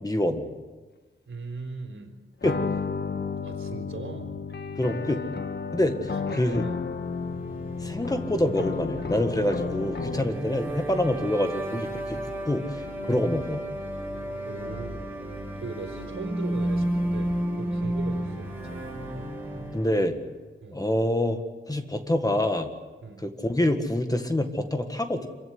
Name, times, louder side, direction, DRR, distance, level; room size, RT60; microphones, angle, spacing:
voice 1, 0.0-0.5 2.4-2.6 4.8-5.2 5.7-6.0 6.3-6.7 7.8-12.8 13.1-13.6 19.7-20.1 20.7-21.4 21.7-22.7 23.2-25.3, left 1 dB, 15° left, 6 dB, 1.7 m, -26 dB
voice 2, 1.3-2.1 3.4-4.4 5.9-6.0 6.2-6.9 13.1-13.2 14.5-15.1 15.6-18.9 20.6-20.8 23.0-23.2, right 3 dB, 80° right, 2 dB, 4.1 m, -39 dB
sound 1, 2.4-10.5, left 5 dB, 55° left, 1.4 m, -32 dB
sound 2, 7.1-20.1, right 1 dB, 10° right, 7.1 m, -33 dB
26.5 x 16.0 x 9.9 m, 1.3 s
wide cardioid pair, 125°, 21 cm